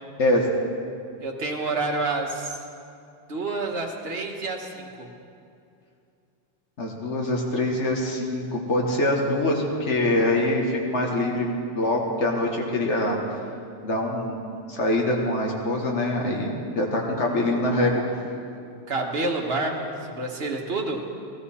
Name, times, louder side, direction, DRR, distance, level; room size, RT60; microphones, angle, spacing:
voice 1, 1.2-2.6 3.3-5.1 18.9-21.0, right 2 dB, 60° right, 1 dB, 1.6 m, -28 dB
voice 2, 6.8-11.5 11.7-13.2 13.8-14.4 14.7-18.1, left 1 dB, 90° left, -1 dB, 1.8 m, -24 dB
16.5 x 14.5 x 4.3 m, 2.5 s
omnidirectional pair, 1.2 m